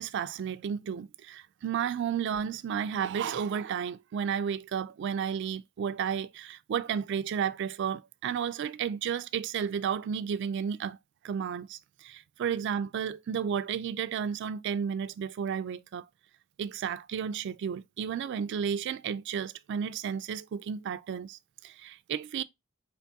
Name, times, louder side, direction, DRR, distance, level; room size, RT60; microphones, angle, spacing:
voice 1, 0.0-11.0 11.2-16.1 16.6-22.4, right 7 dB, 55° right, 0.3 m, -32 dB
4.4 x 3.4 x 2.6 m
head